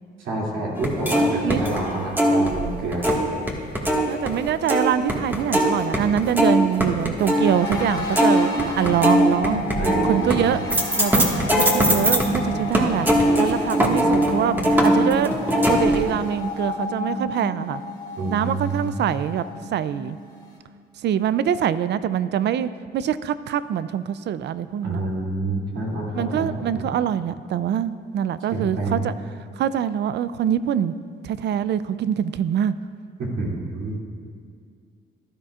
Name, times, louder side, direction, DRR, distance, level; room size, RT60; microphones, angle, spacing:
voice 1, 0.2-3.1 9.8-10.6 18.2-19.2 24.8-26.5 26.7-26.8 28.5-29.1 33.2-33.9, right 2 dB, 80° right, -4 dB, 2.8 m, -28 dB
sound 1, 0.7-3.5 3.7-12.4 12.7-16.0, equal, 10° right, 1.7 m, -21 dB
voice 2, 4.1-9.6 10.0-10.6 11.0-11.3 11.6-13.1 13.4-14.5 14.8-15.4 15.7-17.8 18.3-19.4 19.7-20.2 21.0-25.0 26.1-29.1 29.6-30.9 31.2-32.7, right 9 dB, 60° right, 15 dB, 0.4 m, -24 dB
the one who sleeps, 7.2-20.6, left 1 dB, 20° left, 2.3 m, -31 dB
15.5 x 11.5 x 2.5 m, 2.2 s
cardioid pair, 90°, 20 cm